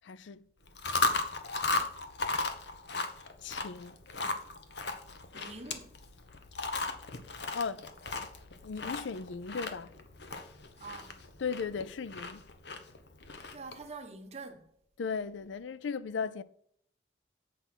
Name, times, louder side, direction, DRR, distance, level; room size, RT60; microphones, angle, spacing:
voice 1, 0.0-0.5 3.4-4.0 7.5-7.9 8.6-9.9 11.4-12.4 15.0-16.4, left 5 dB, 85° left, 0.5 m, -36 dB
Chewing mastication, 0.6-13.9, left 3 dB, 70° left, 1.1 m, -36 dB
voice 2, 5.3-5.9 10.8-11.2 13.5-14.7, right 3 dB, 35° right, 1.4 m, -46 dB
8.3 x 5.4 x 6.0 m
head